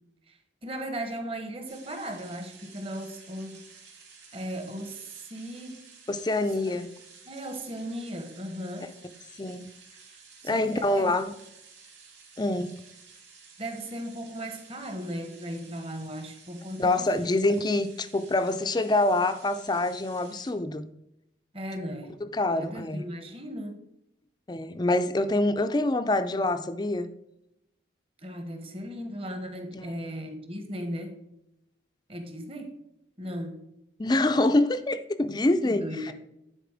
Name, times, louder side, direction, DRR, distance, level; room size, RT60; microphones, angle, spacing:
voice 1, 0.3-3.7 4.3-5.8 6.7-6.8 7.2-8.9 10.4-11.2 13.6-17.3 21.5-22.2 22.5-23.8 28.2-31.2 32.1-32.8 33.2-33.6 35.6-36.1, equal, 30° right, 1.0 m, -37 dB
sound 1, 1.7-20.5, right 5 dB, 75° right, 2.4 m, -53 dB
voice 2, 6.1-6.9 9.4-9.7 10.4-11.3 12.4-12.7 16.8-20.9 22.3-23.0 24.5-27.1 29.7-30.1 34.0-36.1, left 2 dB, 20° left, 0.4 m, -26 dB
10.0 x 4.2 x 4.9 m
head